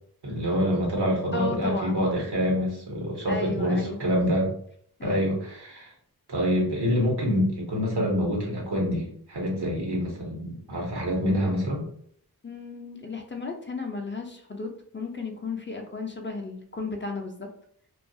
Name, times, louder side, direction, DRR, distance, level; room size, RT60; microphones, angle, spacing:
voice 1, 0.2-4.5 5.0-5.9 6.3-11.8, equal, 85° right, -2 dB, 1.0 m, -26 dB
voice 2, 1.3-2.0 3.3-4.0 5.0-5.3 12.4-17.5, left 4 dB, 30° left, 3 dB, 0.4 m, -34 dB
2.3 x 2.2 x 2.6 m, 0.62 s
wide cardioid pair, 50°, 39 cm